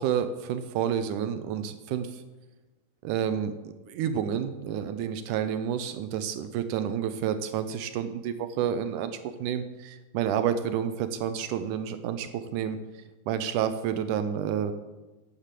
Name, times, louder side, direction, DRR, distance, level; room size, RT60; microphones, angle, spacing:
voice 1, 0.0-2.2 3.0-3.5 3.9-12.8 13.3-14.7, right 8 dB, 75° right, 10 dB, 2.0 m, -29 dB
10.0 x 8.3 x 7.4 m, 1.1 s
omnidirectional pair, 4.1 m